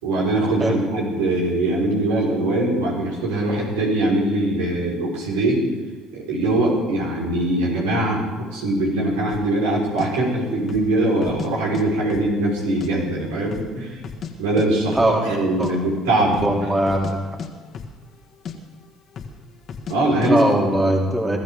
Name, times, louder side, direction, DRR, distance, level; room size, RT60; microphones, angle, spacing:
voice 1, 0.0-5.6 6.1-8.2 8.5-14.0 14.4-16.5 19.9-20.7, right 1 dB, 90° right, -3 dB, 4.6 m, -22 dB
sound 1, 9.3-9.5 10.0-10.1 10.6-10.9 11.2-11.8 12.1-12.9 13.2-13.3 13.5-14.3 14.6-14.7 14.9-15.1 15.4-15.7 16.2-16.6 16.8-17.1 17.4-18.2 18.4-18.6 19.1-19.4 19.7-20.0 20.2-20.3, left 6 dB, 50° left, 1.8 m, -34 dB
voice 2, 16.4-17.2 20.2-21.4, right 1 dB, 20° right, -1 dB, 2.9 m, -20 dB
22.5 x 13.5 x 3.7 m, 1.4 s
supercardioid pair, 75°, 0 cm